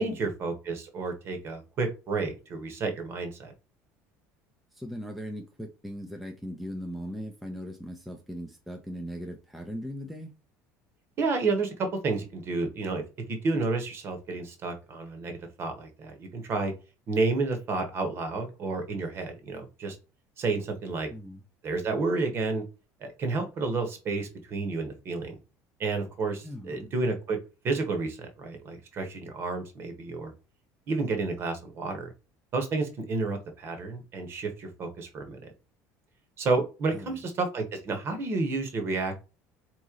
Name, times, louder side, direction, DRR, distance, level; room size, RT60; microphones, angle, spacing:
voice 1, 0.0-3.5 11.2-13.0 13.3-16.7 17.1-20.0 20.4-21.1 21.6-22.6 23.0-25.4 25.8-27.4 27.6-30.3 30.9-32.1 32.5-35.4 36.4-39.1, right 3 dB, 40° right, 1.2 m, -30 dB
voice 2, 4.7-10.3 20.9-21.4 26.4-26.9 36.9-37.2, equal, ahead, 0.6 m, -39 dB
3.9 x 3.1 x 3.7 m
cardioid pair, 145°, 7 cm